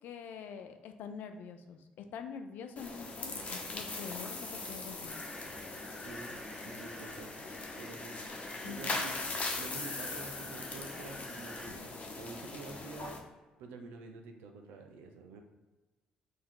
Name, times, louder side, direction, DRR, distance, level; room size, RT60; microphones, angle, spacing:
voice 1, 0.0-5.2 8.6-9.0, left 6 dB, 65° left, 7 dB, 0.4 m, -45 dB
sound 1, 2.8-13.2, left 3 dB, 40° left, 0.9 m, -40 dB
sound 2, 5.1-11.7, left 1 dB, 10° left, 1.3 m, -49 dB
voice 2, 6.0-7.3 7.8-8.2 8.7-13.2 13.6-15.4, right 3 dB, 75° right, 5 dB, 0.6 m, -48 dB
4.4 x 2.7 x 3.7 m, 1.2 s
hypercardioid pair, 50°, 3 cm